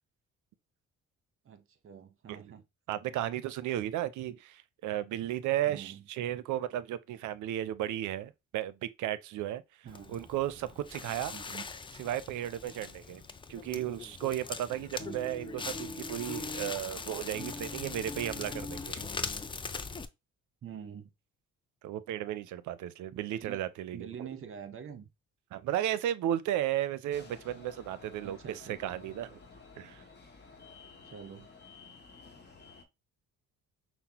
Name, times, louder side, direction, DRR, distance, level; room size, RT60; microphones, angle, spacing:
voice 1, 1.4-2.6 5.7-6.0 9.8-10.1 11.3-11.6 15.0-15.2 20.6-21.1 23.1-23.6 23.9-25.0 28.2-29.0 31.1-31.5, right 7 dB, 45° right, 0.9 m, -46 dB
voice 2, 2.9-9.6 10.1-11.3 12.0-13.2 13.5-19.1 21.8-24.3 25.5-29.4 29.8-30.0, right 12 dB, 75° right, 0.5 m, -34 dB
Crackle, 9.9-20.1, left 4 dB, 15° left, 0.3 m, -40 dB
sound 1, 27.1-32.8, left 4 dB, 35° left, 0.9 m, -53 dB
5.7 x 2.0 x 2.9 m
cardioid pair, 90°, 30 cm